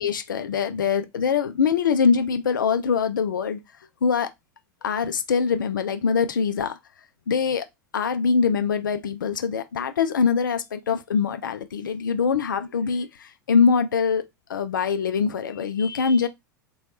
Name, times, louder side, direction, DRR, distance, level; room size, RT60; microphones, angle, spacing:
voice 1, 0.0-3.6 4.0-4.3 4.8-6.8 7.3-7.7 7.9-14.2 14.5-16.3, left 6 dB, 80° left, 0.5 m, -23 dB
3.0 x 2.2 x 2.9 m
hypercardioid pair, 90°, 11 cm